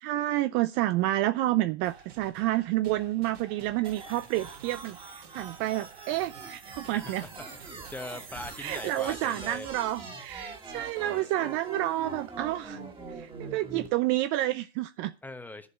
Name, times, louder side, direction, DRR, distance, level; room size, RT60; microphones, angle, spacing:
voice 1, 0.0-7.3 8.6-12.8 13.1-15.1, right 15 dB, 35° right, 0.5 m, -29 dB
sound 1, 1.8-9.1, right 7 dB, 70° right, 3.1 m, -52 dB
sound 2, 3.9-13.9, right 4 dB, 15° right, 2.0 m, -43 dB
voice 2, 6.9-9.7 15.2-15.7, left 2 dB, 5° left, 1.0 m, -41 dB
9.5 x 7.1 x 6.3 m
hypercardioid pair, 120°, 32 cm